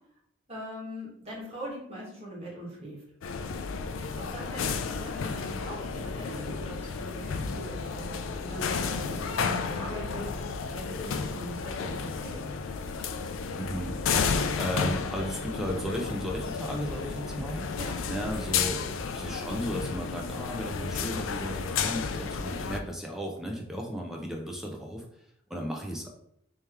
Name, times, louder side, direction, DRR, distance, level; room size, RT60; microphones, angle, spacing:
voice 1, 0.5-3.0 4.1-12.4 17.7-18.0, right 1 dB, 30° right, -5 dB, 1.3 m, -42 dB
sound 1, 3.2-22.8, left 5 dB, 75° left, 0.3 m, -32 dB
voice 2, 13.6-14.0 14.6-17.7 18.1-25.1 25.5-26.1, equal, ahead, 0 dB, 0.5 m, -35 dB
3.3 x 2.9 x 3.5 m, 0.75 s
head